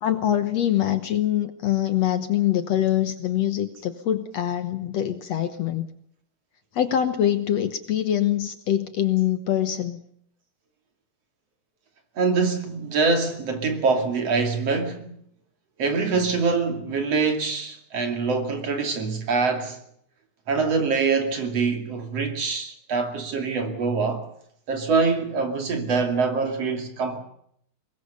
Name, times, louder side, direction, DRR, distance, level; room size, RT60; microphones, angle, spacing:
voice 1, 0.0-5.9 6.7-10.0, left 11 dB, 65° left, 2.0 m, -24 dB
voice 2, 12.2-15.1 15.8-19.8 20.5-24.2 24.7-27.2, right 4 dB, 50° right, 3.4 m, -24 dB
24.0 x 20.5 x 6.9 m
omnidirectional pair, 3.7 m